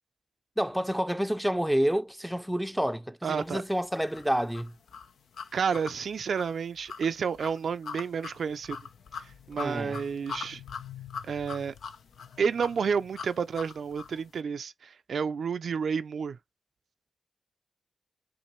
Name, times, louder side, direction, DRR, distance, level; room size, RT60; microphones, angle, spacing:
voice 1, 0.6-4.7 9.6-10.0, equal, 5° right, 0.5 m, -29 dB
voice 2, 3.2-3.6 5.5-8.8 9.5-10.6 11.3-11.7 12.4-16.4, right 6 dB, 75° right, 0.3 m, -30 dB
sound 1, 4.1-14.2, left 6 dB, 85° left, 0.5 m, -42 dB
5.7 x 2.6 x 3.0 m
cardioid pair, 50°, 0 cm